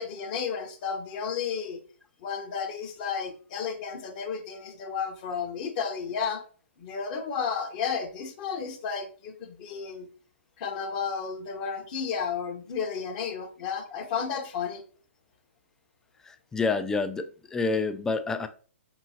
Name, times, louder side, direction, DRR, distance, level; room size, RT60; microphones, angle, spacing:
voice 1, 0.0-1.8 2.2-6.4 6.8-10.1 10.6-14.8, left 6 dB, 40° left, 1.0 m, -32 dB
voice 2, 16.2-18.5, left 4 dB, 10° left, 0.3 m, -28 dB
5.4 x 3.0 x 2.8 m
figure-of-eight pair, 125°, 7 cm